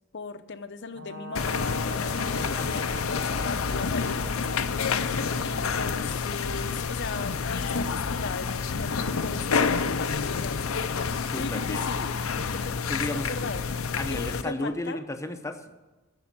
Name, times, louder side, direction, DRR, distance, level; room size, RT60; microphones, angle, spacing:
voice 1, 0.1-4.2 5.4-13.6 14.1-15.0, left 4 dB, 60° left, 10 dB, 0.8 m, -38 dB
Brass instrument, 0.9-6.1, equal, 80° right, 1.3 m, -41 dB
sound 1, 1.3-14.4, left 5 dB, 85° left, 0.7 m, -28 dB
voice 2, 11.2-11.9 12.9-13.3 14.0-15.7, left 1 dB, 15° left, 7 dB, 0.8 m, -33 dB
11.5 x 7.1 x 8.7 m, 1.2 s
head